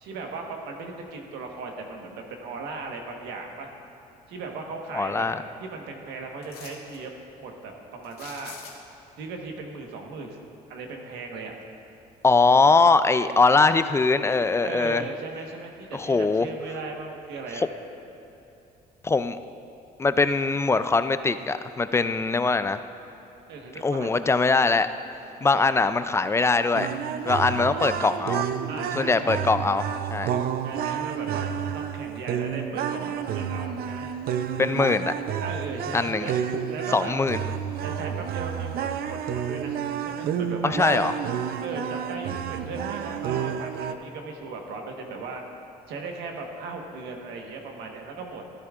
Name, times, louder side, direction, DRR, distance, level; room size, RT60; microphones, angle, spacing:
voice 1, 0.0-3.7 4.3-5.3 5.6-7.1 7.4-8.6 9.2-10.4 10.7-11.5 14.6-17.6 23.5-24.1 25.4-25.6 27.5-28.2 28.7-29.5 30.6-31.4 31.7-34.2 35.4-36.3 36.7-37.1 37.8-41.1 41.6-45.4 45.9-48.4, right 3 dB, 85° right, 2 dB, 1.3 m, -37 dB
voice 2, 4.9-5.4 12.2-15.0 15.9-16.5 19.0-19.4 20.0-22.8 23.8-24.9 25.4-27.0 27.3-28.4 28.9-29.8 30.1-30.3 34.6-35.1 35.9-36.3 36.9-37.4 40.6-41.1, left 3 dB, 15° left, 12 dB, 0.3 m, -22 dB
sound 1, 6.4-7.0 8.0-9.1 11.6-11.7 12.2-12.9 13.3-14.4 14.8-14.9, left 5 dB, 65° left, 2.1 m, -46 dB
sound 2, 26.7-43.9, right 8 dB, 65° right, 0.5 m, -30 dB
13.5 x 11.5 x 2.4 m, 2.9 s
cardioid pair, 110°, 17 cm